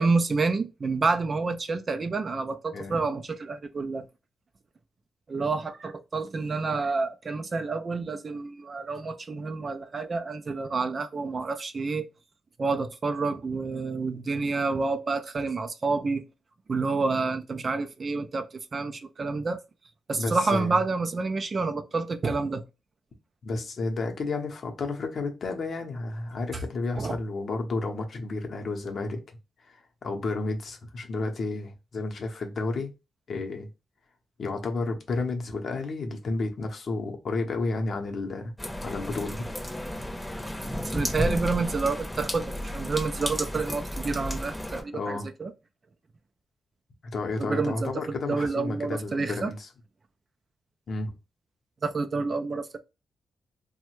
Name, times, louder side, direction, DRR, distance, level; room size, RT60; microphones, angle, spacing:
voice 1, 0.0-4.1 5.3-12.1 12.6-16.3 16.7-19.6 20.1-22.6 27.0-27.2 40.9-45.5 47.4-49.5 51.8-52.8, right 4 dB, 35° right, 0.3 m, -28 dB
voice 2, 20.2-20.8 23.4-29.2 29.7-32.9 33.3-33.7 34.4-38.5 38.8-39.4 44.9-45.3 47.0-49.7 50.9-51.1, left 3 dB, 50° left, 0.7 m, -31 dB
sound 1, 38.6-44.8, equal, 5° left, 0.7 m, -33 dB
3.2 x 2.1 x 3.0 m
wide cardioid pair, 135°, 0 cm